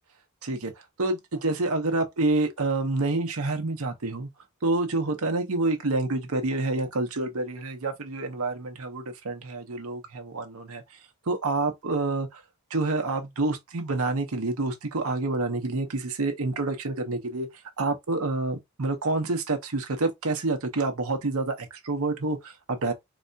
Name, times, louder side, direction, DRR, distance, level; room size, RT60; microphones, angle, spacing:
voice 1, 0.4-0.7 1.0-4.3 4.6-10.8 11.3-12.4 12.7-17.5 17.8-22.9, right 2 dB, 75° right, 0.9 m, -28 dB
4.1 x 2.2 x 2.6 m
head